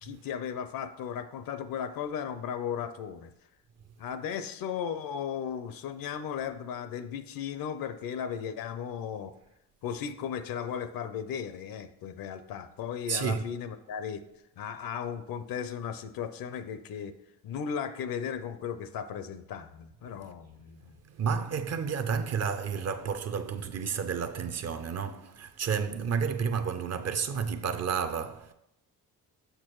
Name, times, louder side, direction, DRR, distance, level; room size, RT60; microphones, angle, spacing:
voice 1, 0.0-3.3 4.0-9.3 9.8-14.2 14.6-17.2 17.4-20.9, left 8 dB, 65° left, 0.6 m, -36 dB
voice 2, 13.1-13.5 21.2-28.5, right 6 dB, 45° right, 0.5 m, -31 dB
6.8 x 5.8 x 3.0 m
cardioid pair, 110°, 37 cm